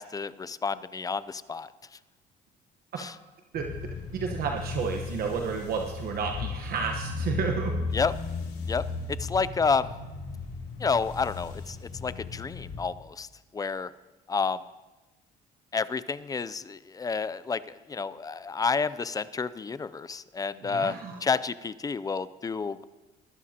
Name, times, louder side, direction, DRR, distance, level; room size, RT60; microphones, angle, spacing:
voice 1, 0.0-1.7 3.0-3.1 7.9-8.1 8.7-9.9 10.8-13.3 13.5-13.9 14.3-14.6 15.7-22.8, left 5 dB, 20° left, 16 dB, 0.4 m, -30 dB
sound 1, 3.5-12.8, left 4 dB, 80° left, 2.7 m, -36 dB
voice 2, 4.1-7.7 20.6-21.2, right 6 dB, 65° right, 2 dB, 1.1 m, -31 dB
20.5 x 12.5 x 2.9 m, 1.2 s
cardioid pair, 110°, 17 cm